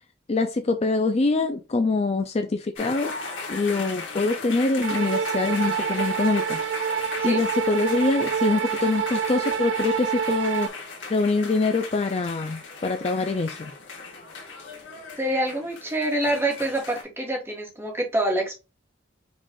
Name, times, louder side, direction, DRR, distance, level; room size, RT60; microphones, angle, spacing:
voice 1, 0.3-3.1 3.5-6.6 7.2-10.7 11.1-13.7, left 3 dB, 35° left, 0.4 m, -24 dB
sound 1, 2.8-17.0, left 4 dB, 80° left, 1.4 m, -37 dB
sound 2, 4.8-10.7, right 8 dB, 70° right, 0.4 m, -27 dB
voice 2, 15.2-18.6, right 1 dB, 15° right, 1.3 m, -26 dB
5.2 x 2.5 x 3.5 m
head